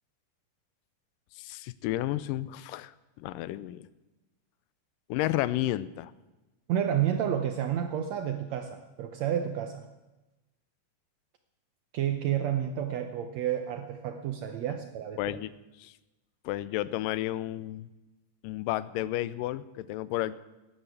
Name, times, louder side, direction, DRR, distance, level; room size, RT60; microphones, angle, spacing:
voice 1, 1.4-2.9 3.2-3.9 5.1-6.1 15.2-15.5 15.8-15.9 16.5-17.9 18.4-20.4, left 15 dB, 85° left, 17 dB, 2.3 m, -32 dB
voice 2, 6.7-9.9 11.9-15.4, right 10 dB, 70° right, 6 dB, 1.7 m, -30 dB
12.5 x 9.9 x 9.2 m, 1.1 s
omnidirectional pair, 3.8 m